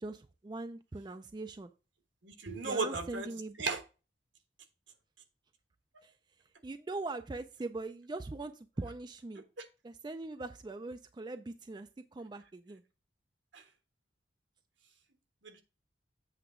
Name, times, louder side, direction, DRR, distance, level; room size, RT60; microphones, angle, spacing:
voice 1, 0.0-1.7 2.6-3.6 6.0-6.1 6.6-9.4 9.8-12.8, right 2 dB, 25° right, 9 dB, 0.3 m, -41 dB
voice 2, 2.2-3.3 3.6-3.8 9.6-9.7 13.5-13.6 15.4-15.6, right 4 dB, 75° right, 7 dB, 1.3 m, -35 dB
7.9 x 3.4 x 6.0 m, 0.31 s
head